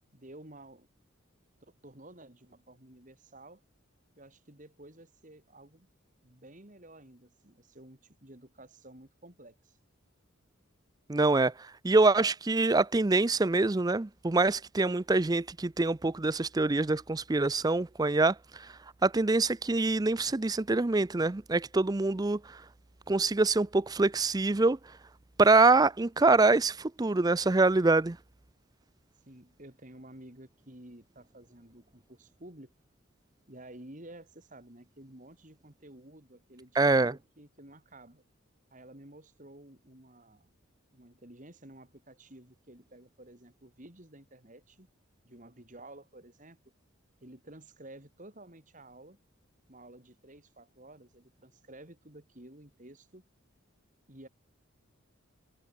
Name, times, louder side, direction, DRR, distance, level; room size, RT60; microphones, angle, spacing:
voice 1, 0.1-0.9 1.8-3.6 4.2-5.9 6.2-9.8 29.2-32.7 33.5-38.2 38.7-40.5 40.9-44.9 45.2-46.6 47.2-49.2 49.7-53.2 54.1-54.3, right 1 dB, 35° right, 3.3 m, -52 dB
voice 2, 11.1-11.5 11.8-18.3 19.0-22.4 23.1-24.8 25.4-28.2 36.8-37.1, right 3 dB, 20° right, 0.4 m, -25 dB
head